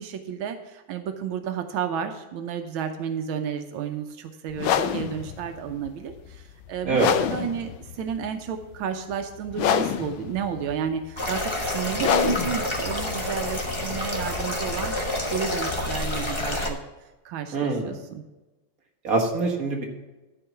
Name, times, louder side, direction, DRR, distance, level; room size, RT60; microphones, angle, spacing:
voice 1, 0.0-16.8 17.2-18.2, right 7 dB, 85° right, 6 dB, 1.6 m, -32 dB
sound 1, 4.5-14.4, left 9 dB, 85° left, 1.4 m, -28 dB
sound 2, 11.2-16.7, left 1 dB, 20° left, 0.9 m, -28 dB
voice 2, 17.5-18.0 19.0-19.8, right 3 dB, 45° right, 1 dB, 2.0 m, -24 dB
12.5 x 4.6 x 5.7 m, 1.1 s
omnidirectional pair, 2.1 m